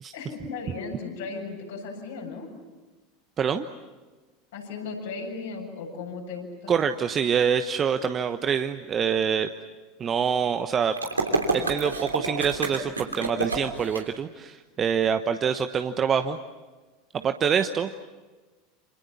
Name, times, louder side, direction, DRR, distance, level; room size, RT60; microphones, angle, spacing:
voice 1, 0.1-2.5 4.5-6.7, left 4 dB, 65° left, 1 dB, 7.4 m, -36 dB
voice 2, 6.7-9.5 10.0-11.0 11.5-16.4 17.2-18.0, right 7 dB, 30° right, 8 dB, 1.1 m, -25 dB
sound 1, 11.0-14.0, right 3 dB, 85° right, 3.1 m, -28 dB
28.0 x 27.5 x 7.2 m, 1.3 s
figure-of-eight pair, 80°, 0 cm